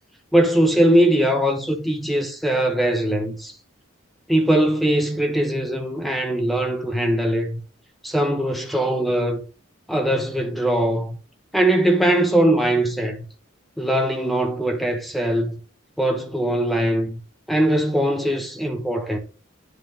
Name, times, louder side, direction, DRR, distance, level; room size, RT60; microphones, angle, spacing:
voice 1, 0.3-3.5 4.3-7.6 8.0-9.4 9.9-11.2 11.5-13.2 13.8-15.6 16.0-17.2 17.5-19.2, right 1 dB, ahead, 1.0 m, -21 dB
9.7 x 3.8 x 5.1 m
head